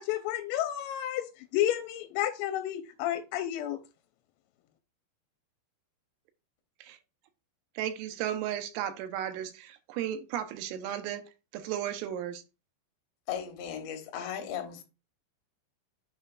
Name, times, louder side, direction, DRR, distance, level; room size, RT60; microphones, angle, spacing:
voice 1, 0.0-3.8, left 12 dB, 90° left, 3.3 m, -31 dB
voice 2, 7.8-11.2 11.5-12.4, right 10 dB, 85° right, 3.4 m, -34 dB
voice 3, 13.3-14.8, left 9 dB, 70° left, 3.1 m, -36 dB
8.8 x 5.6 x 2.4 m
omnidirectional pair, 5.9 m